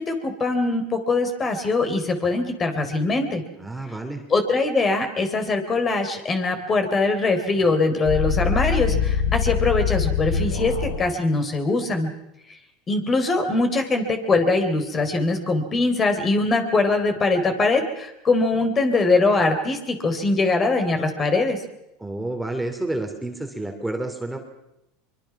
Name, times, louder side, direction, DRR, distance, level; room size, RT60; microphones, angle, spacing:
voice 1, 0.0-3.4 4.3-12.1 12.9-21.6, left 3 dB, 30° left, 7 dB, 3.7 m, -22 dB
voice 2, 3.5-4.3 22.0-24.4, right 2 dB, 5° right, 4 dB, 3.0 m, -29 dB
sound 1, 8.0-11.0, left 6 dB, 85° left, 4.3 m, -23 dB
23.5 x 23.0 x 6.0 m, 0.86 s
hypercardioid pair, 100°, 0 cm